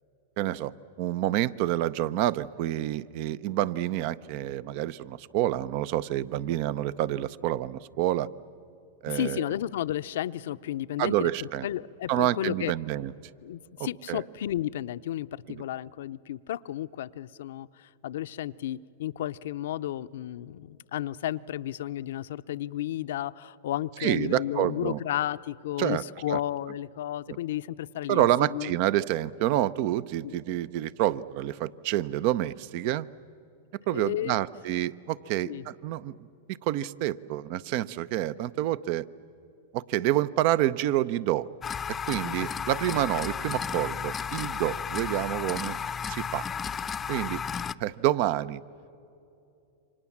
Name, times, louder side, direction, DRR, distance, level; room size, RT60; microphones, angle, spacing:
voice 1, 0.4-8.3 9.0-9.4 11.0-11.7 12.1-13.1 14.1-14.2 15.5-15.6 24.0-25.0 25.8-26.0 26.3-26.4 27.3-27.4 28.1-33.1 33.9-36.3 36.6-39.1 39.7-41.5 42.1-45.8 46.1-46.5 47.1-47.4 47.8-48.6, right 13 dB, 55° right, 19 dB, 0.6 m, -28 dB
voice 2, 9.1-12.7 13.4-28.7 30.2-30.4 33.9-34.4 35.4-35.6 42.3-42.5, left 12 dB, 75° left, 14 dB, 0.6 m, -33 dB
sound 1, 41.6-47.7, left 7 dB, 20° left, 0.6 m, -33 dB
29.0 x 25.5 x 7.3 m, 2.8 s
hypercardioid pair, 120°, 0 cm